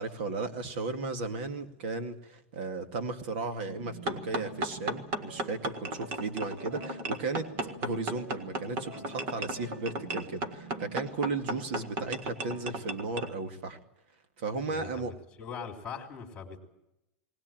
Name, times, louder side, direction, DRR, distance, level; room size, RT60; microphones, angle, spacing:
voice 1, 0.0-13.8 14.4-15.1, right 3 dB, 50° right, 7 dB, 2.3 m, -35 dB
sound 1, 3.6-13.5, right 3 dB, 65° right, 6.6 m, -48 dB
sound 2, 4.1-13.3, right 2 dB, 30° right, 1.7 m, -35 dB
voice 2, 14.7-16.6, left 6 dB, 15° left, 4 dB, 3.4 m, -42 dB
20.0 x 19.0 x 9.1 m, 0.87 s
supercardioid pair, 180°, 7 cm